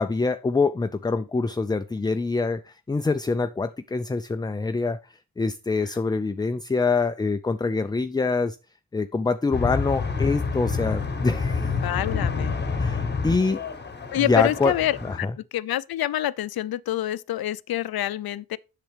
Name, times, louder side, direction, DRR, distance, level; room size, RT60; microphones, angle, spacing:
voice 1, 0.0-5.0 5.4-8.6 8.9-11.7 12.8-13.6 14.2-14.7 15.1-15.3, left 4 dB, 10° left, 0.3 m, -25 dB
sound 1, 9.5-15.2, left 4 dB, 25° left, 1.0 m, -28 dB
voice 2, 11.8-12.6 14.1-15.0 15.5-18.6, left 13 dB, 70° left, 0.5 m, -26 dB
7.7 x 6.7 x 3.3 m
cardioid pair, 80°, 39 cm